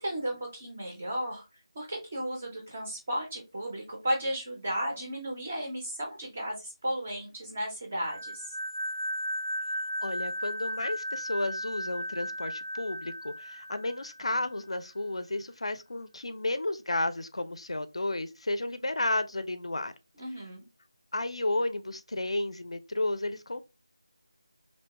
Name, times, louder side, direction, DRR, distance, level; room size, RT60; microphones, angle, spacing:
voice 1, 0.0-1.5 1.7-8.5 20.2-20.6, equal, 10° right, 0.3 m, -34 dB
sound 1, 8.0-14.5, equal, 75° right, 0.4 m, -36 dB
voice 2, 10.0-19.9 21.1-23.6, left 2 dB, 80° left, 0.4 m, -32 dB
2.8 x 2.2 x 2.8 m
figure-of-eight pair, 180°, 3 cm